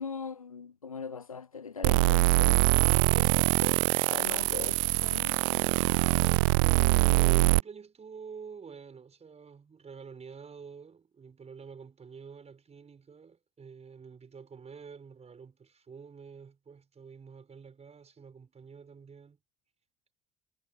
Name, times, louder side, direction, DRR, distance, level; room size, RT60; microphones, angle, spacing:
voice 1, 0.0-2.6 3.1-3.8 4.1-5.4, left 5 dB, 90° left, 0.9 m, -40 dB
sound 1, 1.8-7.6, right 26 dB, 70° right, 0.5 m, -24 dB
voice 2, 7.0-19.4, right 6 dB, 40° right, 5.9 m, -48 dB
figure-of-eight pair, 45°, 18 cm